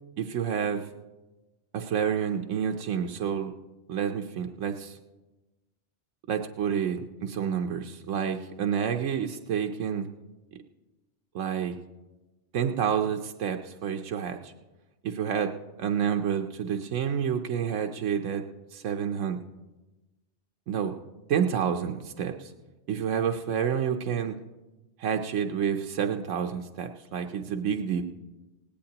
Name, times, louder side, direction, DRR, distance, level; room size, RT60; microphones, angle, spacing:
voice 1, 0.2-0.9 1.7-3.5 3.9-4.9 6.3-10.1 11.3-11.8 12.5-14.5 15.0-15.5 15.8-18.4 18.7-19.4 20.7-20.9 21.3-22.5 22.9-24.4 25.0-28.0, right 8 dB, 85° right, 5 dB, 1.1 m, -29 dB
17.5 x 17.5 x 2.9 m, 1.1 s
omnidirectional pair, 1.2 m